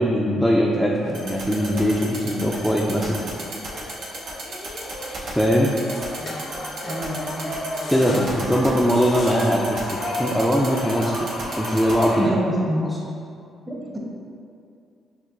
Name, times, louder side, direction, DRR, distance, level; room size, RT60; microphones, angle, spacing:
voice 1, 0.0-3.3 5.3-5.7 7.9-9.8 10.2-11.3 11.6-12.4, equal, ahead, -4 dB, 0.4 m, -21 dB
sound 1, 1.0-12.3, left 1 dB, 50° left, 0.5 m, -34 dB
sound 2, 1.1-12.0, right 3 dB, 70° right, 0.8 m, -33 dB
voice 2, 6.8-7.6 12.2-12.9 13.7-14.0, equal, 20° right, -2 dB, 0.9 m, -27 dB
6.6 x 2.5 x 2.5 m, 2.4 s
supercardioid pair, 70°, 0 cm